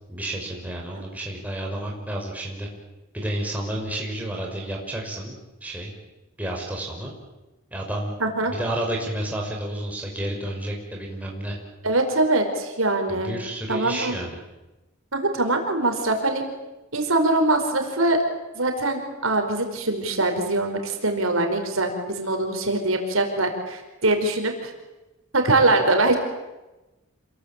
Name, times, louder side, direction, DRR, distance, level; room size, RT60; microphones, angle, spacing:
voice 1, 0.1-2.7 3.1-5.3 5.6-5.9 6.4-7.1 7.7-8.1 8.5-11.6 13.1-14.4, right 1 dB, 5° right, -1 dB, 5.7 m, -30 dB
voice 2, 8.2-8.5 11.8-13.3 13.7-14.2 15.1-16.4 16.9-18.2 18.5-24.7 25.3-26.1, right 2 dB, 75° right, 5 dB, 4.9 m, -23 dB
27.5 x 22.0 x 9.0 m, 1.0 s
head